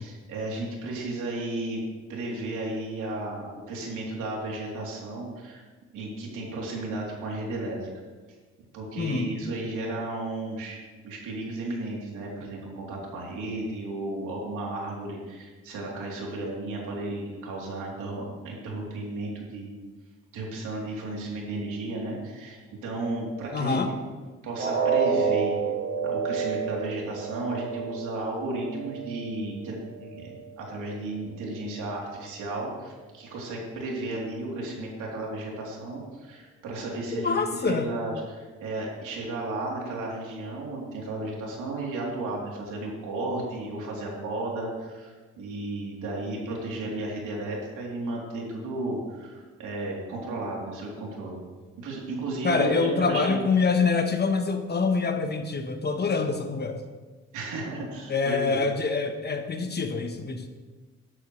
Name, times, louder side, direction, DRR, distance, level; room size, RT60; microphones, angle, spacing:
voice 1, 0.0-1.8 2.1-5.6 5.9-7.9 8.7-10.8 11.0-19.7 20.3-24.1 24.4-25.6 26.0-51.4 51.8-53.4 57.3-58.6, right 2 dB, 85° right, -3 dB, 3.5 m, -34 dB
voice 2, 9.0-9.3 23.5-23.9 37.2-37.9 52.4-56.8 58.1-60.5, left 4 dB, 35° left, 6 dB, 1.2 m, -25 dB
sound 1, 24.6-30.6 30.9-31.1 31.6-31.7, right 5 dB, 50° right, 3.4 m, -29 dB
12.5 x 12.0 x 3.3 m, 1.4 s
cardioid pair, 90°, 30 cm